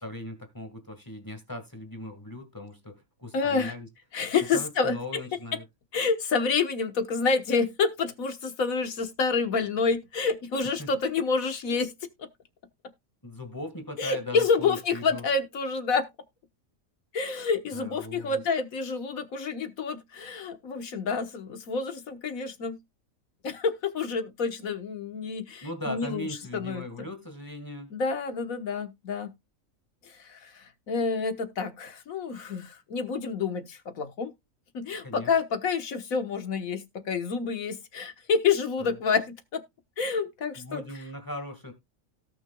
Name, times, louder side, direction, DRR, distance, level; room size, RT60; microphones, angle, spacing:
voice 1, 0.0-3.9 4.5-5.6 10.8-10.9 13.2-15.3 17.7-18.4 25.6-27.9 35.0-35.3 38.8-39.0 40.5-41.7, left 1 dB, 15° left, 1.8 m, -39 dB
voice 2, 3.3-3.7 4.1-5.2 5.9-11.9 14.0-16.1 17.1-22.8 23.4-26.2 26.5-26.8 27.9-29.3 30.2-34.3 34.7-39.6 40.0-40.8, left 5 dB, 85° left, 1.7 m, -28 dB
17.5 x 6.1 x 2.3 m
omnidirectional pair, 1.4 m